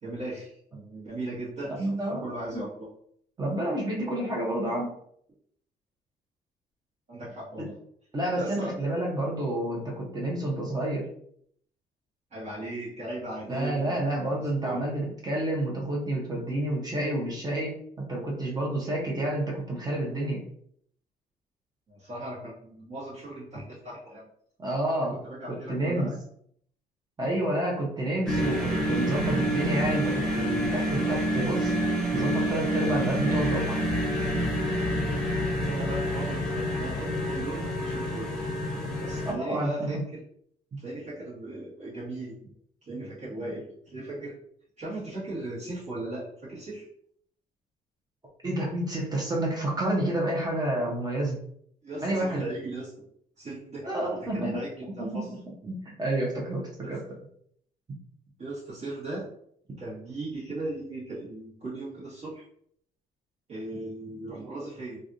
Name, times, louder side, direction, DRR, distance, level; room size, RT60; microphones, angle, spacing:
voice 1, 0.0-1.9 2.2-2.9 7.1-7.7 8.4-8.9 12.3-14.0 14.3-14.8 21.9-24.3 24.9-26.1 35.6-38.3 39.0-40.2 40.8-42.5 42.9-44.4 44.8-46.9 51.8-53.0 53.4-55.3 55.6-55.7 56.8-56.9 58.4-59.3 59.8-62.4 63.5-65.0, right 2 dB, 45° right, -9 dB, 1.3 m, -38 dB
voice 2, 1.8-2.2 2.5-2.6 3.4-5.0 7.6-7.7 8.1-11.1 13.5-20.4 24.6-25.2 25.7-26.1 27.2-31.7 32.1-33.8 39.2-39.9 48.4-51.4 52.0-52.4 53.8-55.2 55.7-57.0, right 1 dB, 25° right, -2 dB, 0.9 m, -29 dB
sound 1, 28.3-39.3, equal, 5° left, 1.0 m, -28 dB
3.4 x 2.4 x 2.6 m, 0.66 s
cardioid pair, 125°, 16 cm